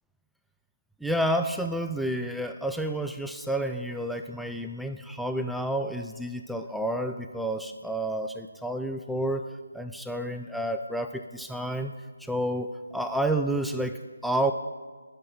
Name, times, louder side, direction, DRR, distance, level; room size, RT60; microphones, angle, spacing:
voice 1, 1.0-9.4 9.7-11.9 12.2-14.5, right 1 dB, ahead, 5 dB, 0.3 m, -30 dB
11.0 x 6.0 x 8.6 m, 1.4 s
figure-of-eight pair, 160°, 0 cm